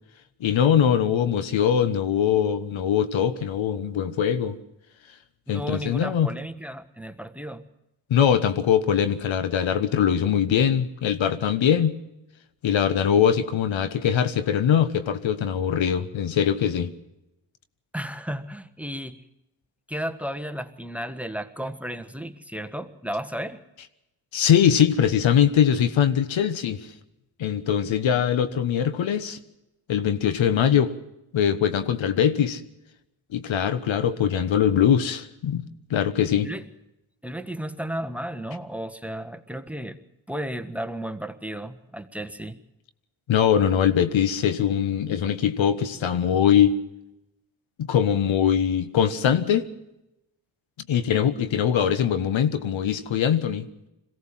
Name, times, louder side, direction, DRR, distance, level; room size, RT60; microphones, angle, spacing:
voice 1, 0.4-4.6 5.5-6.3 8.1-12.0 12.6-16.9 24.3-26.9 27.4-29.4 29.9-30.9 31.3-32.6 33.3-36.5 43.3-46.7 47.8-49.7 50.9-53.7, left 8 dB, 70° left, 1.3 m, -22 dB
voice 2, 5.5-7.6 17.9-19.2 19.9-23.6 36.4-36.6 37.2-40.0 40.3-42.6, equal, 5° right, 1.5 m, -33 dB
22.0 x 17.0 x 7.5 m
cardioid pair, 60°, 47 cm